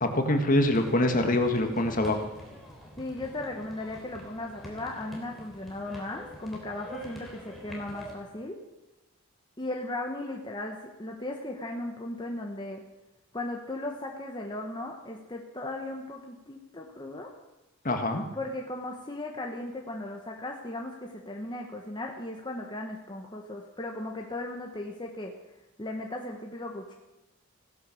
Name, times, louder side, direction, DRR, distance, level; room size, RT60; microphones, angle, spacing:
voice 1, 0.0-2.2 17.8-18.2, left 1 dB, 40° left, 5 dB, 1.7 m, -24 dB
sound 1, 0.7-8.1, equal, ahead, 3.4 m, -46 dB
voice 2, 3.0-8.6 9.6-12.8 13.3-17.3 18.3-25.3 25.8-27.0, left 2 dB, 20° left, 1 dB, 1.3 m, -37 dB
16.5 x 11.5 x 7.1 m, 1.0 s
head